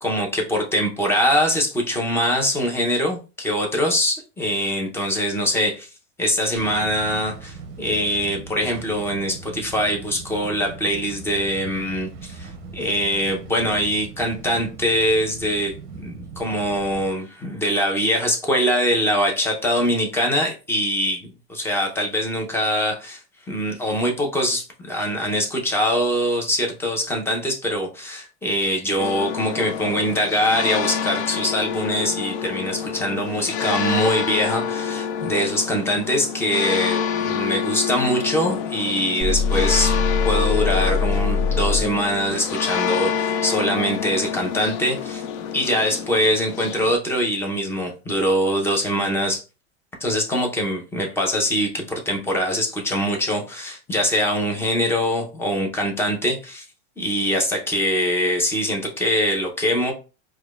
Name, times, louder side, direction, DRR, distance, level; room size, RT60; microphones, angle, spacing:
voice 1, 0.0-5.9 6.2-23.2 23.5-39.9 40.2-45.2 45.5-49.4 50.0-56.6 57.0-59.9, equal, 5° left, 1 dB, 0.6 m, -23 dB
sound 1, 6.6-17.1, right 5 dB, 35° right, 0.7 m, -39 dB
sound 2, 29.0-46.9, left 7 dB, 45° left, 0.5 m, -27 dB
sound 3, 39.2-42.0, left 5 dB, 70° left, 1.3 m, -22 dB
4.7 x 2.3 x 2.3 m, 0.32 s
supercardioid pair, 140°, 35 cm